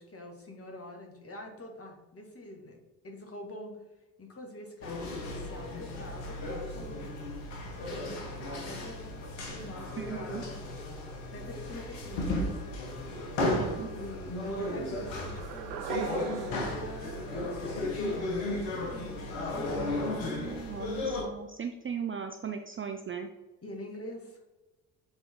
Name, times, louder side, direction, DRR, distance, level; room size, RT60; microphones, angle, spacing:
voice 1, 0.0-2.8 3.0-3.7 4.2-7.2 7.6-10.8 11.0-12.8 13.9-20.2 23.6-24.4, left 1 dB, 30° left, 2 dB, 2.0 m, -45 dB
sound 1, 4.8-21.2, left 2 dB, 70° left, 1.5 m, -35 dB
voice 2, 10.0-10.4 13.6-13.9 19.7-23.3, right 7 dB, 25° right, 5 dB, 0.6 m, -38 dB
sound 2, 15.0-18.1, right 9 dB, 80° right, 0.6 m, -40 dB
8.1 x 3.9 x 3.7 m, 1.1 s
hypercardioid pair, 45°, 49 cm